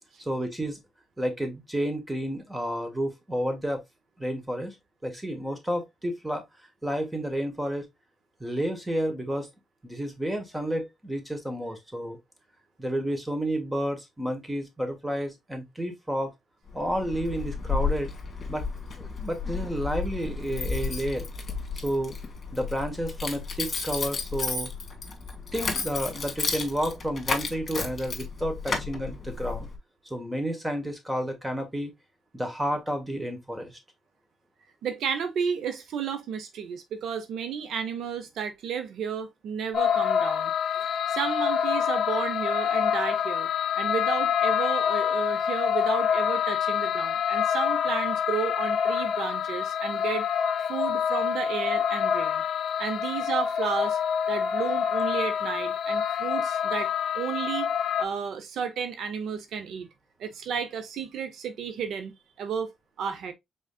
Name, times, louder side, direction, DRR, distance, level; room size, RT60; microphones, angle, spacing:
voice 1, 0.2-0.8 1.2-3.8 4.2-4.7 5.0-6.4 6.8-7.9 8.4-9.5 9.8-12.2 12.8-16.3 16.7-18.1 18.5-18.7 18.9-21.3 21.8-22.1 22.5-24.7 25.5-29.7 30.1-31.9 32.3-33.8, equal, 10° right, 1.7 m, -31 dB
Keys jangling, 16.7-29.8, left 4 dB, 40° left, 1.9 m, -33 dB
voice 2, 34.8-43.5 43.8-50.3 50.7-52.4 52.8-54.0 54.3-57.7 58.0-59.9 60.2-62.1 62.4-62.7 63.0-63.3, right 7 dB, 70° right, 0.8 m, -32 dB
sound 1, 39.7-58.0, left 8 dB, 65° left, 0.6 m, -26 dB
4.9 x 4.1 x 2.4 m
cardioid pair, 90°, 0 cm